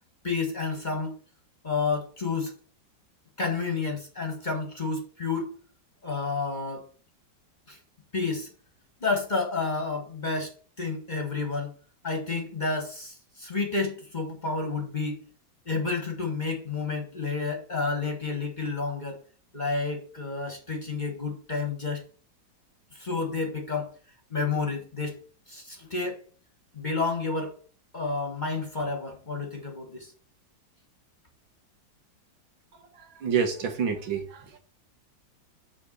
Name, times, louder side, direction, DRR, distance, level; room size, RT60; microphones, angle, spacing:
voice 1, 0.2-1.2 1.6-2.5 3.4-5.5 6.0-6.9 7.7-7.8 8.1-8.5 9.0-11.7 12.0-15.3 15.6-19.2 19.5-22.0 22.9-23.9 24.3-25.2 25.5-26.2 26.7-27.5 27.9-30.1, left 4 dB, 30° left, 1.2 m, -30 dB
voice 2, 33.2-34.6, right 6 dB, 90° right, 2.1 m, -28 dB
7.1 x 4.4 x 6.5 m
omnidirectional pair, 2.1 m